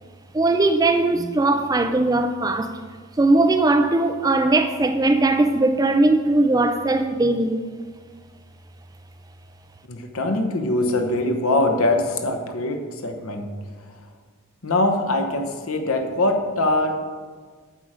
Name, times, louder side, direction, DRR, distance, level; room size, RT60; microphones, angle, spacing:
voice 1, 0.3-2.7 3.2-7.6, right 2 dB, 15° right, 0.3 m, -19 dB
voice 2, 9.9-13.5 14.6-16.9, left 2 dB, 70° left, 1.1 m, -22 dB
8.7 x 7.4 x 4.9 m
head